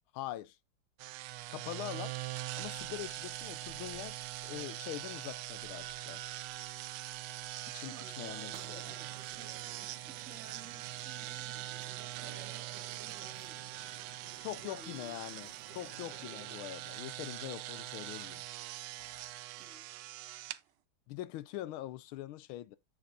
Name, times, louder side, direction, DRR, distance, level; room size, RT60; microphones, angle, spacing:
voice 1, 0.1-0.6 1.5-2.1 2.6-6.2 7.7-9.0 14.4-18.4 21.1-22.8, left 14 dB, 90° left, 1.5 m, -43 dB
sound 1, 1.0-20.6, right 16 dB, 90° right, 1.5 m, -43 dB
voice 2, 7.8-9.6 10.1-13.6 14.6-15.2 19.6-19.9, right 5 dB, 40° right, 1.8 m, -56 dB
sound 2, 8.5-16.6, right 6 dB, 65° right, 1.9 m, -55 dB
sound 3, 19.0-19.5, left 9 dB, 60° left, 1.1 m, -66 dB
7.8 x 6.6 x 2.7 m
omnidirectional pair, 2.3 m